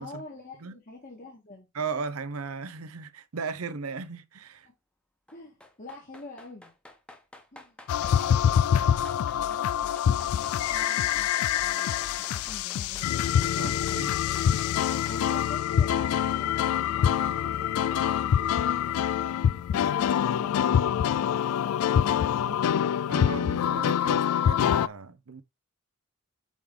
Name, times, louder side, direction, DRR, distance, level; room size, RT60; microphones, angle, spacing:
voice 1, 0.0-1.7 4.6-4.7 5.3-6.7 7.5-14.2 15.1-20.8, left 2 dB, 40° left, 1.8 m, -47 dB
voice 2, 1.7-4.7 13.6-14.1 23.1-25.4, right 5 dB, 80° right, 0.7 m, -36 dB
sound 1, 5.3-8.2 8.8-9.7 10.0-15.6 15.9-16.0, left 1 dB, 5° left, 1.1 m, -51 dB
sound 2, 7.9-24.9, left 9 dB, 90° left, 0.3 m, -25 dB
8.3 x 3.7 x 3.3 m
head